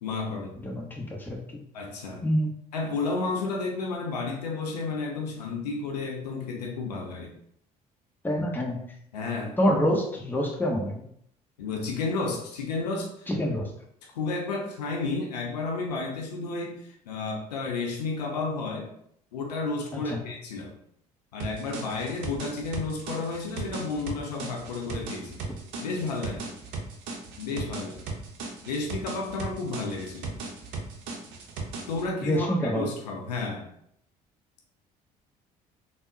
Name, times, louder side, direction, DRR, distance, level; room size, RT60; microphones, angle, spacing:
voice 1, 0.0-0.5 1.7-2.3 2.7-7.4 9.1-9.6 11.6-13.3 14.2-18.9 19.3-20.7 21.3-25.4 25.8-26.5 27.4-28.0 28.7-30.4 31.9-33.7, left 3 dB, 80° left, 1 dB, 0.5 m, -32 dB
voice 2, 0.6-1.5 2.2-2.6 8.2-8.8 9.6-11.0 13.3-13.7 19.9-20.2 32.2-32.9, equal, 10° left, 0 dB, 0.7 m, -26 dB
sound 1, 21.4-32.1, right 3 dB, 65° right, 0.6 m, -37 dB
3.5 x 2.0 x 2.6 m, 0.70 s
figure-of-eight pair, 55°, 21 cm